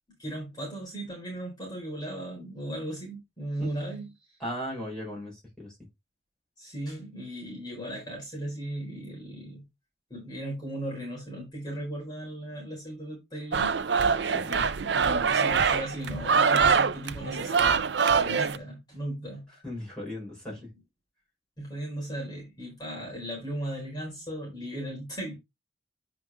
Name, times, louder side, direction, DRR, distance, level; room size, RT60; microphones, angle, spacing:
voice 1, 0.2-4.4 6.6-9.7 10.1-13.7 14.5-17.9 18.2-19.5 21.6-25.3, right 1 dB, 25° left, 4.4 m, -37 dB
voice 2, 4.4-5.8 14.2-14.4 19.6-20.6, equal, 5° left, 5.5 m, -37 dB
sound 1, 13.5-18.6, right 5 dB, 75° right, 0.6 m, -24 dB
9.4 x 5.1 x 3.6 m
head